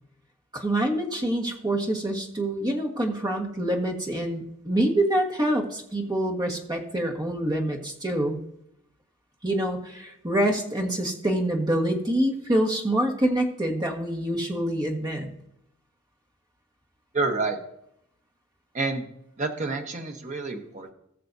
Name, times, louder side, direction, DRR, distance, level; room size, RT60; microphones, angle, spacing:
voice 1, 0.5-8.4 9.4-15.3, right 1 dB, 20° right, 1 dB, 1.5 m, -26 dB
voice 2, 17.1-17.6 18.7-19.1 19.4-20.9, right 3 dB, 35° right, 4 dB, 1.1 m, -28 dB
19.5 x 6.7 x 2.7 m, 0.79 s
head